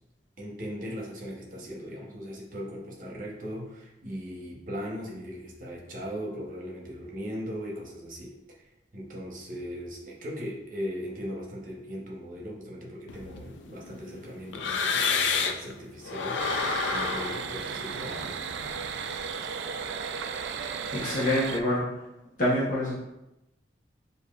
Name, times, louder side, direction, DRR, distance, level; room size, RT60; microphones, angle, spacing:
voice 1, 0.4-8.3 8.9-18.4, equal, 45° right, -2 dB, 0.9 m, -38 dB
sound 1, 13.1-15.7 16.1-19.1, left 5 dB, 90° left, 0.4 m, -30 dB
sound 2, 16.4-21.6, right 6 dB, 80° right, 0.3 m, -35 dB
voice 2, 20.9-21.8 22.4-23.0, left 1 dB, 45° left, -7 dB, 0.9 m, -26 dB
6.9 x 2.7 x 2.4 m, 0.91 s
head